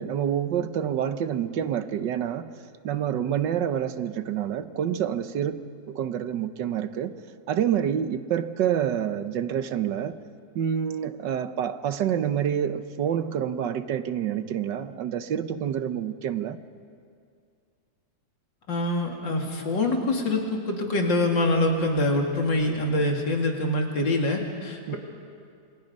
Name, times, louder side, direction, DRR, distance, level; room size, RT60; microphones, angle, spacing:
voice 1, 0.0-2.5 2.8-7.2 7.5-10.2 10.5-16.6 24.9-25.0, right 9 dB, 75° right, 11 dB, 1.5 m, -27 dB
voice 2, 18.7-25.0, left 1 dB, 75° left, 1 dB, 3.2 m, -25 dB
27.0 x 25.0 x 5.4 m, 2.3 s
omnidirectional pair, 2.0 m